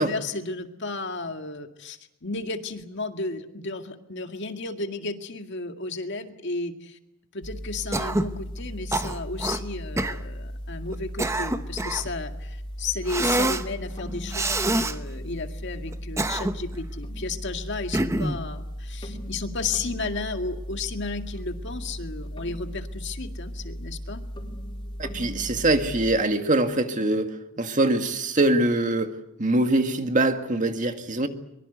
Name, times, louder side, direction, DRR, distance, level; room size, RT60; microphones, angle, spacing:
voice 1, 0.0-7.0 7.3-24.2, left 3 dB, 60° left, 6 dB, 2.0 m, -33 dB
sound 1, 7.4-26.2, equal, 25° left, 4.8 m, -36 dB
Cough, 7.9-8.3 8.9-9.6 10.0-10.2 10.9-12.1 13.1-13.7 14.3-15.0 15.9-16.7 17.9-18.4, right 2 dB, 15° right, 1.0 m, -26 dB
voice 2, 25.0-31.3, right 2 dB, 40° right, 6 dB, 2.0 m, -23 dB
24.0 x 23.5 x 8.1 m, 0.82 s
head